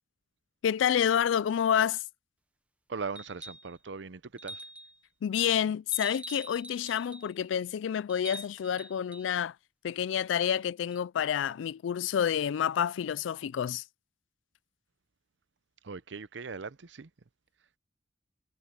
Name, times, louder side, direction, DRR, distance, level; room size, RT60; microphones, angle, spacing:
voice 1, 0.6-2.0 5.2-9.5 9.8-13.8, left 9 dB, 85° left, 0.3 m, -28 dB
voice 2, 2.9-4.6 15.8-17.1, right 4 dB, 70° right, 0.7 m, -39 dB
sound 1, 3.2-3.7 4.4-5.0 5.9-7.3 8.1-9.3 10.9-11.0, right 1 dB, 5° right, 0.6 m, -45 dB
head